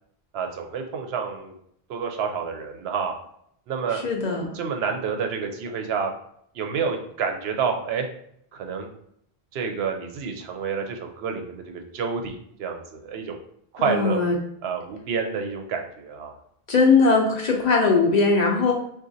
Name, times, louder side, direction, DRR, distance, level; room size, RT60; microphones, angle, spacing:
voice 1, 0.3-1.5 1.9-3.1 3.7-4.0 4.5-6.1 6.5-8.1 8.5-8.9 9.5-13.4 13.7-14.2 14.6-16.3, right 6 dB, 80° right, 4 dB, 0.8 m, -29 dB
voice 2, 4.0-4.5 13.9-14.3 16.7-18.7, left 4 dB, 50° left, 0 dB, 0.6 m, -19 dB
3.8 x 2.4 x 2.6 m, 0.70 s
omnidirectional pair, 1.0 m